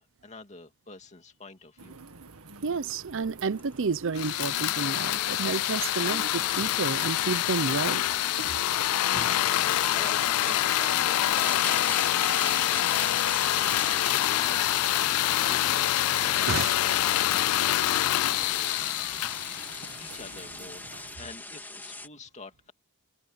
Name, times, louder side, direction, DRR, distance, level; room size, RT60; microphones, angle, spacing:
voice 1, 0.0-2.0 8.9-13.3 13.8-16.6 18.3-18.9 20.0-22.7, left 3 dB, 30° left, 2.5 m, -47 dB
sound 1, 1.8-21.2, right 4 dB, 80° right, 1.9 m, -46 dB
voice 2, 2.6-8.0 16.5-16.7, right 4 dB, 60° right, 0.6 m, -30 dB
sound 2, 3.2-3.3 3.6-3.7 4.3-22.1, left 2 dB, 10° left, 2.0 m, -41 dB
sound 3, 4.1-20.3, left 14 dB, 85° left, 0.4 m, -26 dB
head